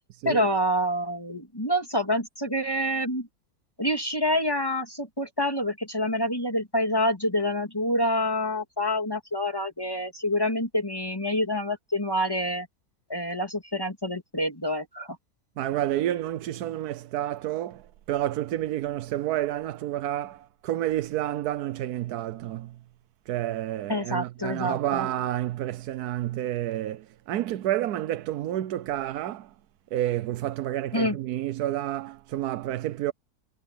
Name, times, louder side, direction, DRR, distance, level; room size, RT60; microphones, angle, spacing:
voice 1, 0.2-3.3 3.8-12.7 13.1-15.2 23.9-25.1 30.9-31.2, equal, 15° left, 2.7 m, -27 dB
voice 2, 15.6-22.8 23.3-29.5 29.9-33.1, right 13 dB, 85° right, 1.2 m, -29 dB
omnidirectional pair, 1.6 m